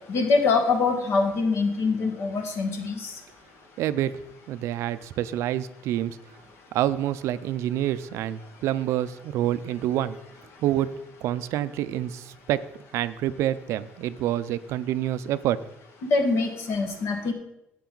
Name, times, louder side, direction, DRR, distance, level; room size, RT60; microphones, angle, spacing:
voice 1, 0.1-3.1 16.1-17.3, left 4 dB, 60° left, 5 dB, 1.7 m, -24 dB
voice 2, 3.8-4.2 4.5-6.2 6.7-10.2 10.6-10.9 11.2-12.6 12.9-15.6, right 12 dB, 75° right, 15 dB, 0.4 m, -27 dB
10.5 x 8.0 x 3.9 m, 0.85 s
cardioid pair, 125°, 5 cm